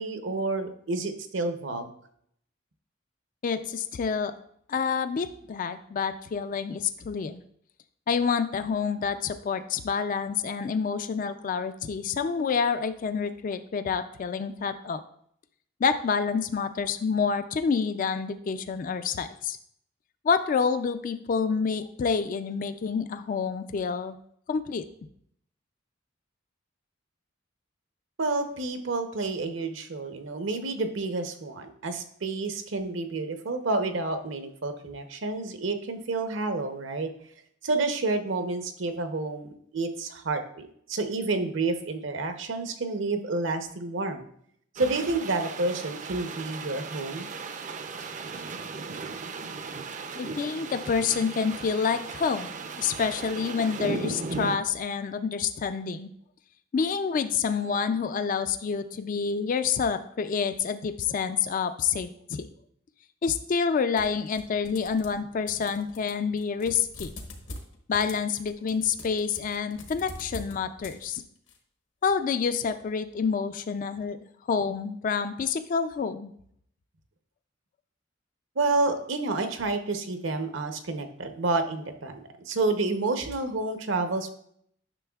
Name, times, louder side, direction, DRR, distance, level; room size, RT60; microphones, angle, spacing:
voice 1, 0.0-1.9 28.2-37.1 37.6-44.3 44.8-47.3 78.6-84.3, right 3 dB, 70° right, 7 dB, 0.8 m, -29 dB
voice 2, 3.4-4.3 4.7-7.4 8.1-15.0 15.8-19.6 20.2-24.2 24.5-24.8 50.2-52.5 52.8-56.1 56.7-62.5 63.2-67.1 67.9-71.2 72.0-74.2 74.5-76.3, left 6 dB, 45° left, 10 dB, 0.3 m, -28 dB
sound 1, 44.8-54.6, right 4 dB, 40° right, 0.5 m, -37 dB
sound 2, 64.0-65.2 65.5-71.6, left 2 dB, 70° left, 1.2 m, -44 dB
9.9 x 6.2 x 2.3 m, 0.67 s
head